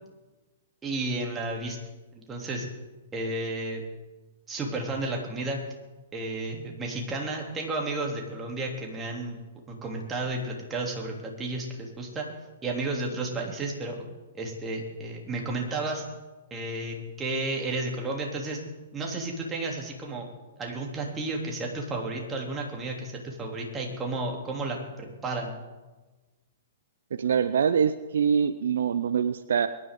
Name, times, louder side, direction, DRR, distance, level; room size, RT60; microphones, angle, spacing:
voice 1, 0.8-1.8 2.1-2.7 3.1-3.8 4.5-5.6 6.1-9.4 9.7-12.3 12.6-14.0 14.3-16.0 16.5-18.6 18.9-20.2 20.6-25.5, right 2 dB, 20° right, 0 dB, 2.9 m, -32 dB
voice 2, 27.1-29.7, right 7 dB, 65° right, 13 dB, 0.5 m, -24 dB
23.5 x 11.0 x 3.7 m, 1.2 s
figure-of-eight pair, 115°, 0 cm